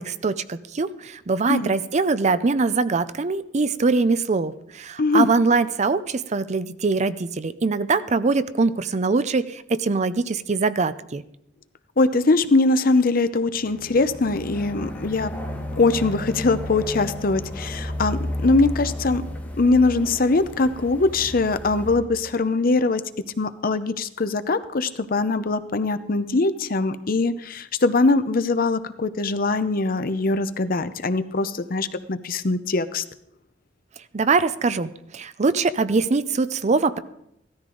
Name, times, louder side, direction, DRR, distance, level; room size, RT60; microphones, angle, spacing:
voice 1, 0.0-11.2 34.1-37.0, right 4 dB, 40° right, 14 dB, 0.5 m, -23 dB
voice 2, 12.0-15.4 15.8-19.2 19.6-23.0 23.4-33.0, left 3 dB, 50° left, 12 dB, 0.7 m, -22 dB
sound 1, 13.7-22.0, left 1 dB, 10° left, 2.2 m, -33 dB
16.0 x 13.0 x 3.9 m, 0.78 s
head